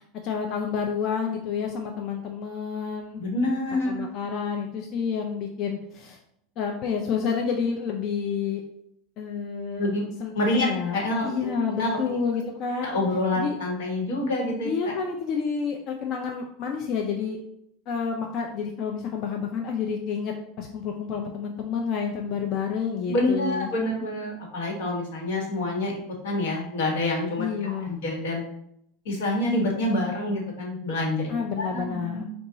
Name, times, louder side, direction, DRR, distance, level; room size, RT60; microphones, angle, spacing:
voice 1, 0.2-3.2 3.7-6.2 6.6-8.6 9.2-9.9 10.2-12.9 13.4-13.6 14.6-17.4 17.9-23.7 27.4-28.0 31.3-32.2, left 6 dB, 35° left, 2 dB, 0.3 m, -29 dB
voice 2, 3.2-4.0 9.8-10.0 10.3-12.0 12.8-14.7 23.1-25.9 26.2-28.4 29.0-32.2, left 2 dB, 75° left, 0 dB, 1.3 m, -27 dB
4.0 x 2.3 x 3.9 m, 0.74 s
supercardioid pair, 175°, 0 cm